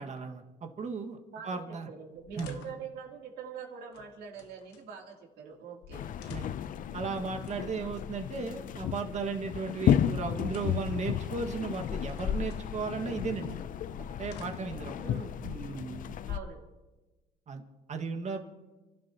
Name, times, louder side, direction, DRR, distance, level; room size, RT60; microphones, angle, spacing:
voice 1, 0.0-1.2 1.4-1.9 2.4-2.6 6.2-6.5 6.9-13.6 13.9-14.9 15.4-16.1 17.5-17.6 17.9-18.5, right 4 dB, 45° right, 4 dB, 1.9 m, -36 dB
voice 2, 1.3-6.1 7.7-8.0 15.0-15.4 16.3-16.6, right 6 dB, 70° right, -1 dB, 3.2 m, -44 dB
sound 1, 2.1-2.9 3.9-4.9 5.5-5.6 5.8-6.8 7.4-8.1 9.2-10.2 10.5-10.9 11.8-12.7 13.5-14.9 15.7-16.4, left 7 dB, 85° left, 1.3 m, -53 dB
sound 2, 5.9-16.4, left 9 dB, 55° left, 0.6 m, -33 dB
29.5 x 12.0 x 3.0 m, 1.2 s
cardioid pair, 110°, 17 cm